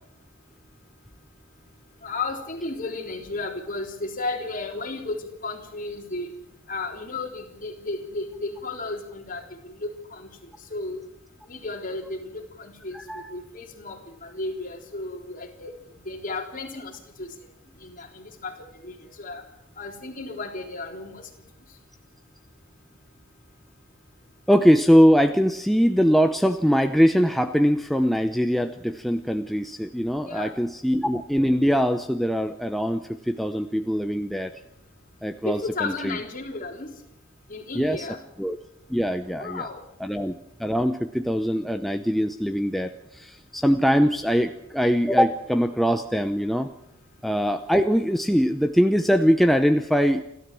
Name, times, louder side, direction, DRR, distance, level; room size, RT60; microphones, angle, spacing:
voice 1, 2.0-6.3 6.7-10.3 10.7-11.0 11.5-15.7 16.0-17.3 17.8-18.6 18.8-19.4 19.8-21.3 30.2-30.5 35.4-36.9 37.5-38.2 39.3-39.8, left 3 dB, 40° left, 3 dB, 3.6 m, -34 dB
voice 2, 12.9-13.3 24.5-34.5 35.2-36.1 37.7-38.1 38.4-38.6 38.9-39.6 40.0-40.3 40.6-46.7 47.2-50.2, equal, ahead, 6 dB, 0.7 m, -22 dB
29.5 x 12.5 x 7.6 m, 0.78 s
head